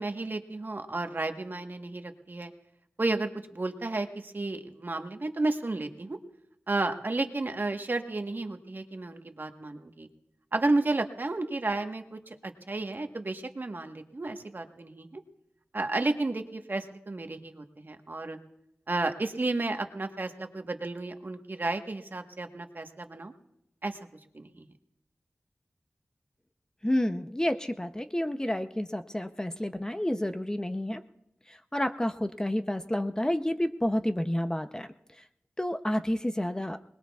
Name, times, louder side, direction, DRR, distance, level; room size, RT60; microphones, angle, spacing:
voice 1, 0.0-2.5 3.0-6.2 6.7-10.1 10.5-15.2 15.7-18.4 18.9-23.3 23.8-24.0 24.3-24.6, right 2 dB, 50° right, 6 dB, 1.2 m, -32 dB
voice 2, 26.8-31.0 31.5-34.9 35.2-35.3 35.6-36.8, left 1 dB, 15° left, 9 dB, 0.6 m, -30 dB
25.0 x 20.0 x 2.4 m, 0.79 s
wide cardioid pair, 50°, 4 cm